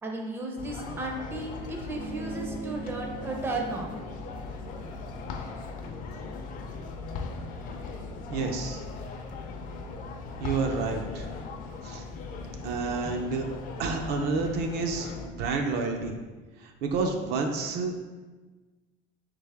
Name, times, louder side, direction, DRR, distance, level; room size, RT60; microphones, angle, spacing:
voice 1, 0.0-3.9, right 2 dB, 10° right, 0 dB, 0.5 m, -34 dB
sound 1, 0.6-15.3, left 4 dB, 50° left, 0.5 m, -39 dB
sound 2, 1.8-6.6, right 4 dB, 90° right, 0.8 m, -43 dB
voice 2, 8.3-8.8 10.4-11.3 11.8-12.0 12.6-13.5 13.8-16.2 16.6-18.0, right 4 dB, 60° right, 3 dB, 0.5 m, -29 dB
3.9 x 3.3 x 3.4 m, 1.3 s
cardioid pair, 145°, 19 cm